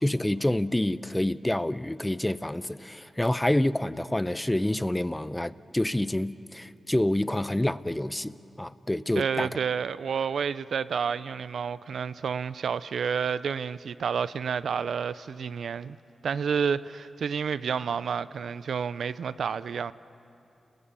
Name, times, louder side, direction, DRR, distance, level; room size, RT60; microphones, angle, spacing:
voice 1, 0.0-9.5, left 1 dB, 15° left, 0.6 m, -27 dB
voice 2, 9.1-16.0 16.2-19.9, right 6 dB, 80° right, 0.5 m, -30 dB
29.5 x 20.0 x 6.8 m
cardioid pair, 55°, 0 cm